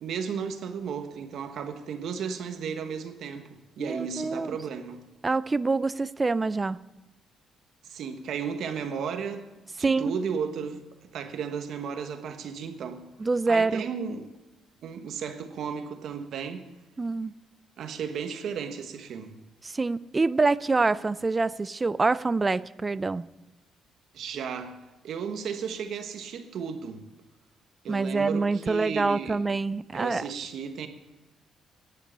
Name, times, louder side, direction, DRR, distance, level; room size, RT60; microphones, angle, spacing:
voice 1, 0.0-5.0 7.8-9.5 9.8-10.8 11.1-13.1 13.5-14.3 14.8-16.7 17.8-19.4 24.1-24.8 25.0-27.0 27.8-29.4 29.9-30.9, right 6 dB, 70° right, 1.2 m, -34 dB
voice 2, 3.8-4.6 5.2-6.8 9.8-10.1 13.2-13.8 17.0-17.3 19.6-23.2 27.9-30.2, right 3 dB, 25° right, 0.4 m, -26 dB
10.5 x 8.4 x 9.9 m
cardioid pair, 90°, 0 cm